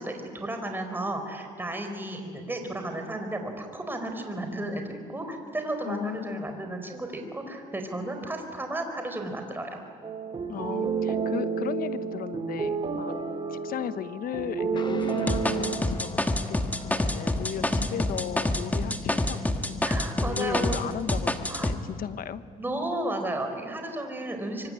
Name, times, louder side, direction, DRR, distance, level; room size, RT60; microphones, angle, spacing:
voice 1, 0.0-9.8 19.8-20.8 21.5-21.7 22.6-24.7, right 1 dB, 10° right, 5 dB, 4.3 m, -33 dB
voice 2, 5.8-6.5 10.5-13.2 13.5-16.2 16.5-19.8 20.2-22.4, left 9 dB, 60° left, 13 dB, 1.2 m, -36 dB
sound 1, 10.0-15.8, right 5 dB, 30° right, 2.5 m, -30 dB
sound 2, 14.8-23.0, left 4 dB, 25° left, 1.4 m, -43 dB
sound 3, 15.3-20.8 21.1-21.7, left 1 dB, 10° left, 1.6 m, -27 dB
25.0 x 24.5 x 9.8 m, 2.1 s
cardioid pair, 110°, 17 cm